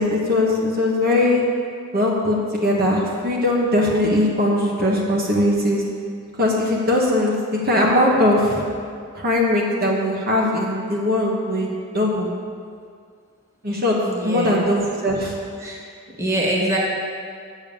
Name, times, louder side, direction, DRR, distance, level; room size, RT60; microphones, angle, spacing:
voice 1, 0.0-1.4 1.9-5.8 6.4-8.6 9.1-12.3 13.6-13.9 14.2-15.3, left 1 dB, 45° right, -2 dB, 1.3 m, -20 dB
voice 2, 14.0-14.6 15.6-15.8 16.2-16.8, right 1 dB, 15° right, -3 dB, 1.6 m, -24 dB
8.8 x 7.2 x 7.0 m, 2.2 s
head